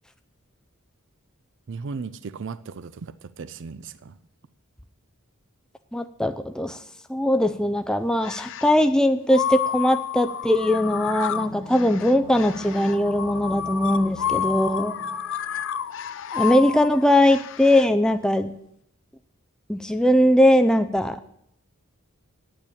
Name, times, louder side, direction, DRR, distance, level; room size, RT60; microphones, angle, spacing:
voice 1, 1.7-4.1, right 5 dB, 55° right, 0.5 m, -36 dB
voice 2, 5.9-6.8 7.1-15.0 16.3-18.5 19.7-21.2, left 1 dB, 5° left, 0.4 m, -20 dB
sound 1, 8.2-8.8 9.3-17.9, left 9 dB, 60° left, 0.5 m, -30 dB
sound 2, 10.5-16.2 16.5-16.6, left 1 dB, 30° right, 1.6 m, -40 dB
9.0 x 8.6 x 8.4 m
head